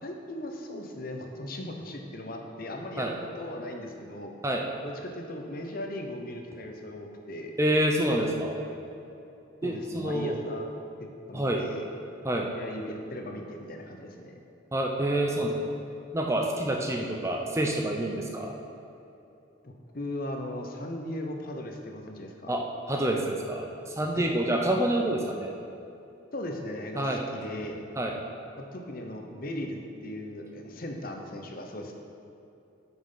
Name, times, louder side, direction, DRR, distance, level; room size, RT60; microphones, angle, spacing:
voice 1, 0.0-4.3 4.8-7.5 9.6-10.7 11.3-11.9 12.5-14.3 19.6-22.5 24.1-24.3 26.3-27.7 28.6-31.9, left 1 dB, 45° left, 3 dB, 0.8 m, -38 dB
voice 2, 7.6-8.6 9.6-10.4 11.3-11.6 12.2-12.5 14.7-15.6 16.1-18.5 22.5-25.5 27.0-27.3 28.0-28.2, right 1 dB, 15° right, 1 dB, 0.6 m, -27 dB
8.7 x 6.2 x 5.5 m, 2.8 s
head